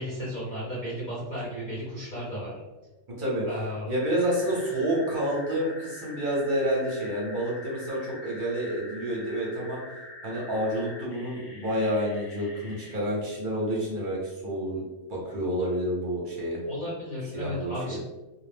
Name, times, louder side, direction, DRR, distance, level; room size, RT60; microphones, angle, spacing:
voice 1, 0.0-2.5 3.5-3.9 16.7-18.0, equal, 45° left, -7 dB, 0.7 m, -34 dB
sound 1, 3.9-13.0, left 1 dB, 80° left, 1.0 m, -45 dB
voice 2, 3.9-9.8 10.2-14.8 15.1-16.6 17.3-18.0, equal, 45° right, -4 dB, 0.7 m, -29 dB
2.2 x 2.0 x 3.2 m, 1.1 s
omnidirectional pair, 1.3 m